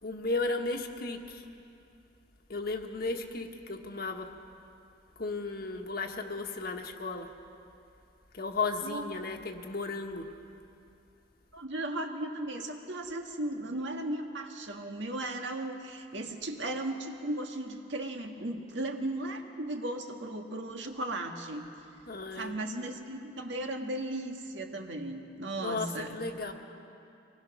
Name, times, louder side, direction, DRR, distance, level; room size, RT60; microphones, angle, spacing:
voice 1, 0.0-1.4 2.5-4.3 5.2-7.3 8.3-10.3 22.1-22.6 25.6-26.5, left 3 dB, 55° left, 4 dB, 1.5 m, -34 dB
voice 2, 11.5-21.7 22.4-26.2, right 1 dB, 75° right, 3 dB, 1.7 m, -36 dB
25.0 x 19.5 x 6.1 m, 2.7 s
head